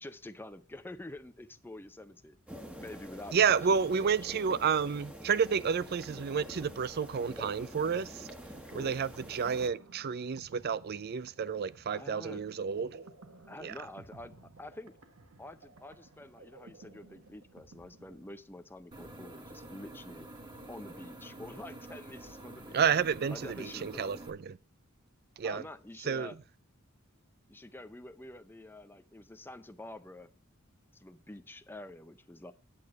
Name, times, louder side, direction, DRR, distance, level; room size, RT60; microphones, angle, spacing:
voice 1, 0.0-2.4 2.8-3.6 3.9-4.5 8.6-8.9 11.9-12.5 13.5-15.0 15.4-20.3 20.7-22.8 23.3-24.2 25.4-26.4 27.5-30.3 30.9-32.5, left 1 dB, 10° left, 0.6 m, -47 dB
sound 1, 2.5-9.7, equal, 5° right, 1.2 m, -47 dB
voice 2, 3.3-8.3 8.7-13.0 13.6-13.7 22.7-24.6 25.4-25.6 26.1-26.3, right 6 dB, 50° right, 0.4 m, -30 dB
sound 2, 8.3-18.8, right 2 dB, 90° right, 1.2 m, -56 dB
sound 3, 18.9-24.3, right 2 dB, 20° right, 1.5 m, -48 dB
8.8 x 8.1 x 4.7 m
head